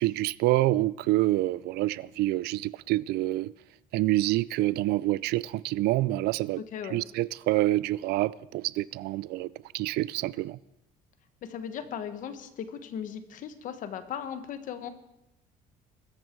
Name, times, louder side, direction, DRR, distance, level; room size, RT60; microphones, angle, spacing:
voice 1, 0.0-3.5 3.9-6.6 6.9-10.6, right 17 dB, 75° right, 0.5 m, -27 dB
voice 2, 6.7-7.0 11.4-14.9, left 8 dB, 50° left, 1.5 m, -37 dB
22.0 x 14.0 x 4.7 m
cardioid pair, 155°, 17 cm